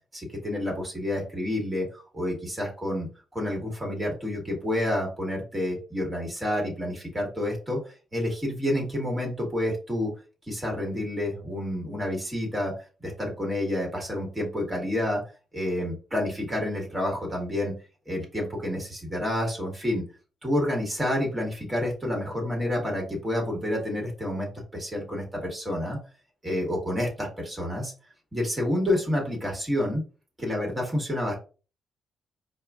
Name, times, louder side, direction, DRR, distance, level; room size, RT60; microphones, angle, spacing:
voice 1, 0.1-7.8 8.1-10.1 10.5-12.7 13.0-15.2 15.5-17.7 18.1-20.0 20.4-26.0 26.4-27.9 28.3-30.0 30.4-31.3, left 1 dB, 15° right, 0 dB, 1.5 m, -29 dB
4.8 x 2.3 x 2.4 m, 0.35 s
cardioid pair, 105°, 0 cm